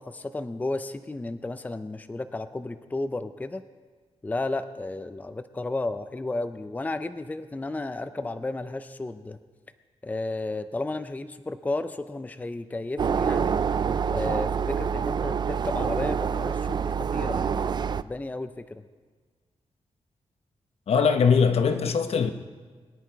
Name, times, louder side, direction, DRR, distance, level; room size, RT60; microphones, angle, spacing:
voice 1, 0.0-3.6 4.2-9.4 10.0-13.6 14.1-18.8, left 2 dB, 15° left, 0.5 m, -33 dB
sound 1, 13.0-18.0, right 6 dB, 40° right, 0.4 m, -26 dB
voice 2, 20.9-22.3, left 6 dB, 70° left, 1.0 m, -21 dB
22.0 x 10.0 x 4.7 m
wide cardioid pair, 120°, 11 cm